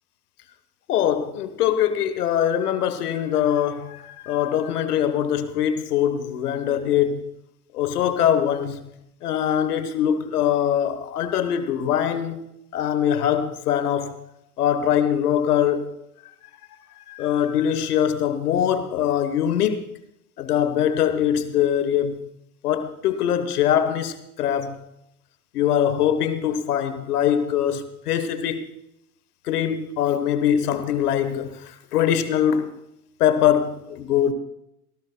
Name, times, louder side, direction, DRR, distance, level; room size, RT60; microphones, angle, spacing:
voice 1, 0.9-7.2 7.7-8.8 9.2-12.4 12.7-14.2 14.6-15.9 17.1-19.8 20.4-22.2 22.6-24.8 25.5-28.6 29.4-32.7 33.2-34.3, left 9 dB, 80° left, 1.3 m, -22 dB
18.0 x 16.5 x 2.3 m
hypercardioid pair, 100°, 45 cm